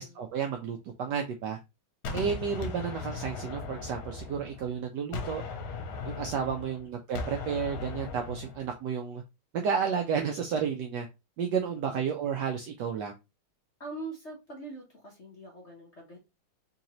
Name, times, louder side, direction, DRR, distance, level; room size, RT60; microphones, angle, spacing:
voice 1, 0.0-1.6 2.1-5.4 6.1-9.2 9.5-11.1 11.4-13.1, right 6 dB, 80° right, 3 dB, 1.0 m, -32 dB
Gunshot gunfire, 2.0-4.8 5.1-8.7, left 4 dB, 80° left, 1.6 m, -38 dB
voice 2, 6.3-6.8 11.6-12.2 13.8-16.2, right 2 dB, 50° left, -2 dB, 0.9 m, -44 dB
4.0 x 2.8 x 2.9 m, 0.24 s
omnidirectional pair, 2.3 m